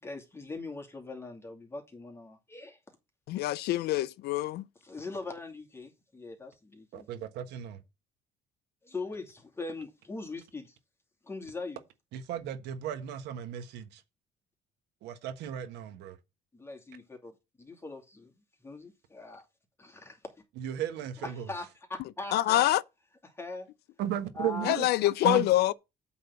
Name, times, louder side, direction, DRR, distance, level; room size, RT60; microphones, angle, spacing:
voice 1, 0.0-2.8 4.8-7.1 8.8-10.8 11.2-11.8 16.5-17.3 17.6-18.4 18.6-19.4 19.8-20.3 21.2-22.6 23.2-23.7 24.0-25.4, left 3 dB, 15° left, 2.5 m, -41 dB
voice 2, 3.3-4.7 22.3-22.8 24.6-25.7, left 15 dB, 75° left, 0.4 m, -25 dB
voice 3, 6.9-7.8 12.1-14.0 15.0-16.2 20.6-21.4 24.0-24.9 25.2-25.5, right 10 dB, 85° right, 1.4 m, -35 dB
8.6 x 3.9 x 6.9 m
cardioid pair, 110°, 17 cm